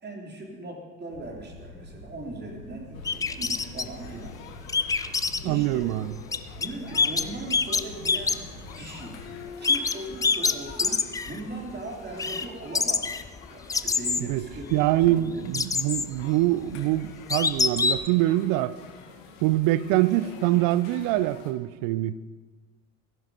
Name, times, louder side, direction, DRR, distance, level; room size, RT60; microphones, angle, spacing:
voice 1, 0.0-4.4 4.9-5.1 5.4-5.9 6.5-8.4 8.7-9.2 9.6-13.1 13.5-15.4, right 2 dB, 25° right, 3.3 m, -39 dB
sound 1, 1.1-9.4, left 2 dB, 90° left, 2.2 m, -46 dB
sound 2, 2.9-21.5, left 6 dB, 60° left, 1.8 m, -47 dB
sound 3, 3.0-3.8 4.7-5.4 6.3-6.7 6.9-9.0 9.6-11.4 11.7-11.8 12.2-12.5 12.7-15.1 15.5-16.2 16.7-16.8 17.3-18.1, left 4 dB, 10° left, 0.4 m, -25 dB
voice 2, 5.4-6.1 14.2-18.8 19.4-22.3, right 15 dB, 55° right, 0.7 m, -24 dB
15.5 x 11.0 x 5.1 m
figure-of-eight pair, 65°, 41 cm